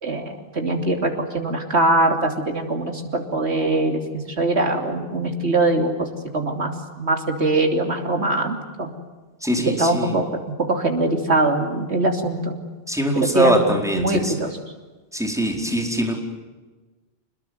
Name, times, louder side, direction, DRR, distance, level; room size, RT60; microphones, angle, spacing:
voice 1, 0.0-6.1 6.3-8.9 9.6-10.3 10.7-12.6 13.1-13.6 13.9-14.5, right 2 dB, 90° right, 4 dB, 3.4 m, -22 dB
voice 2, 9.4-10.2 12.9-14.3 15.1-16.2, equal, 5° right, 2 dB, 4.6 m, -22 dB
26.5 x 21.0 x 9.5 m, 1.2 s
omnidirectional pair, 1.1 m